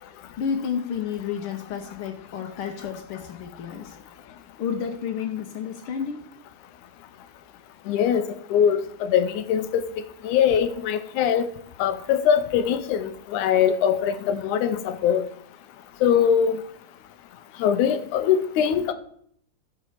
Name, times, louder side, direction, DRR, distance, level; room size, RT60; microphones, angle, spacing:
voice 1, 0.4-3.9 4.6-6.2, left 7 dB, 70° left, 3 dB, 1.3 m, -30 dB
voice 2, 7.9-8.2 8.5-9.8 10.2-11.5 11.8-15.2 16.0-16.6 17.6-18.9, left 8 dB, 85° left, 11 dB, 2.3 m, -22 dB
12.5 x 4.7 x 7.2 m, 0.66 s
omnidirectional pair, 3.4 m